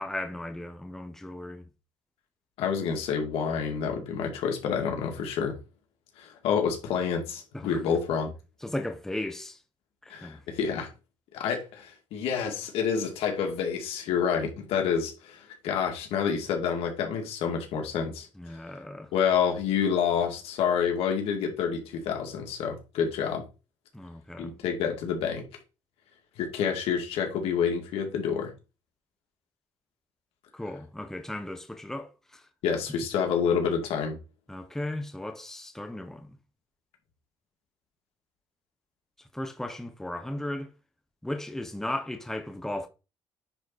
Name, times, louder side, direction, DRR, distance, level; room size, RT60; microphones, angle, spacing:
voice 1, 0.0-1.6 7.5-7.8 8.6-9.6 10.0-10.4 18.4-19.1 23.9-24.5 30.5-32.4 34.5-36.4 39.3-40.7 41.2-42.9, left 1 dB, 5° left, 1.1 m, -36 dB
voice 2, 2.6-5.6 6.2-8.3 10.1-10.9 11.3-18.3 19.1-23.4 24.4-25.4 26.4-28.5 32.6-34.2, left 7 dB, 85° left, 2.3 m, -28 dB
9.7 x 4.1 x 4.1 m
cardioid pair, 115°, 10 cm